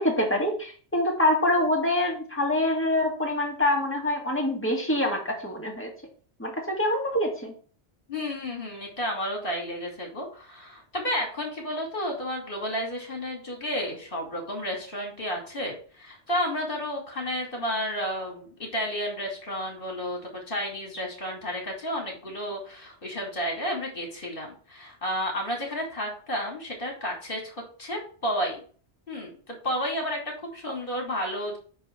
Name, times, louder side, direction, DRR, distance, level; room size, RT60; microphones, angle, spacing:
voice 1, 0.0-5.9 6.4-7.5, left 1 dB, 10° left, -1 dB, 2.0 m, -25 dB
voice 2, 8.1-28.6 29.1-31.6, equal, 50° left, 0 dB, 2.8 m, -32 dB
9.3 x 3.2 x 6.0 m, 0.41 s
omnidirectional pair, 1.2 m